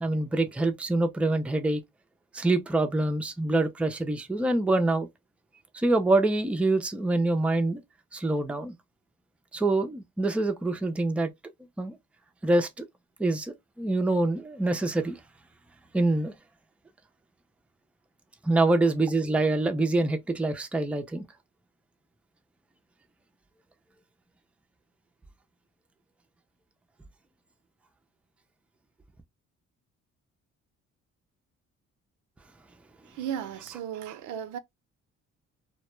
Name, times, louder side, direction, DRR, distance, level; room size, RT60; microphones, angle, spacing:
voice 1, 0.0-1.8 2.3-5.1 5.7-7.8 8.1-8.7 9.5-11.3 11.8-11.9 12.4-12.8 13.2-15.2 15.9-16.3 18.4-21.3, right 2 dB, 5° right, 0.4 m, -25 dB
voice 2, 33.1-34.6, right 9 dB, 80° right, 0.5 m, -35 dB
2.2 x 2.1 x 2.9 m
cardioid pair, 90°, 30 cm